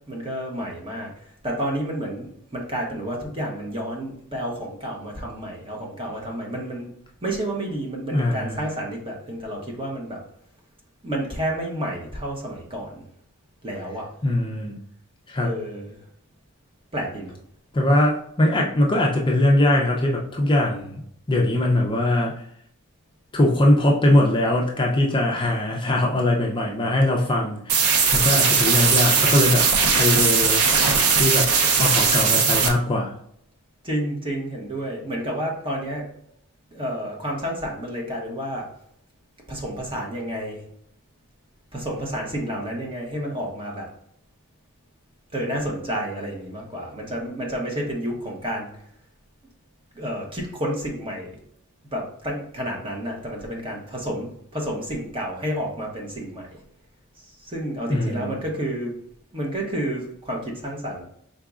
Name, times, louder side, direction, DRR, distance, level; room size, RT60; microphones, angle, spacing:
voice 1, 0.1-1.1 1.4-6.9 7.2-10.2 11.0-13.0 13.6-14.1 15.4-16.0 16.9-17.3 33.8-36.1 36.7-38.6 39.5-40.6 41.7-43.9 45.3-48.7 50.0-51.3 51.9-56.6 57.4-58.9 59.3-61.0, equal, 25° right, -1 dB, 1.1 m, -30 dB
voice 2, 8.1-8.6 14.2-14.7 15.3-15.5 17.7-21.0 21.3-22.4 23.3-29.7 30.0-30.6 31.1-31.5 31.8-33.1 57.9-58.3, left 1 dB, 20° left, -1 dB, 0.5 m, -21 dB
sound 1, 27.7-32.7, right 5 dB, 90° right, 0.7 m, -19 dB
4.7 x 3.9 x 2.4 m, 0.70 s
head